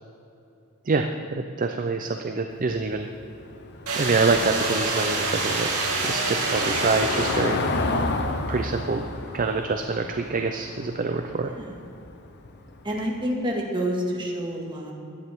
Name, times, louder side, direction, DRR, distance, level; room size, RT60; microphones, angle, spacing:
voice 1, 0.9-3.1 3.9-5.7 6.0-7.6 8.5-9.0 9.3-11.5, right 4 dB, 40° right, 5 dB, 0.5 m, -26 dB
Car passing by / Engine, 2.5-13.2, left 2 dB, 50° left, 0.9 m, -32 dB
sound 1, 3.9-7.9, right 3 dB, 75° right, 2.8 m, -27 dB
voice 2, 11.4-11.8 12.8-14.9, equal, 20° right, -2 dB, 1.9 m, -28 dB
17.0 x 11.5 x 3.6 m, 2.7 s
head